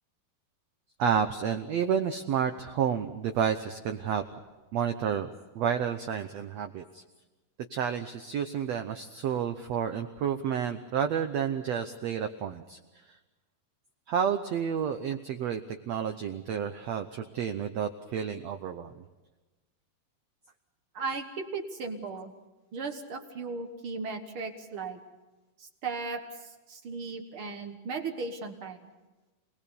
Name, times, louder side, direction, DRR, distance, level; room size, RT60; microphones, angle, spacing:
voice 1, 1.0-4.2 4.7-7.0 7.7-12.8 14.1-18.9, right 8 dB, 80° right, 7 dB, 1.5 m, -30 dB
voice 2, 20.9-22.3 22.7-25.0 25.6-28.9, right 4 dB, 60° right, 6 dB, 1.4 m, -36 dB
27.5 x 19.5 x 7.0 m, 1.2 s
omnidirectional pair, 4.3 m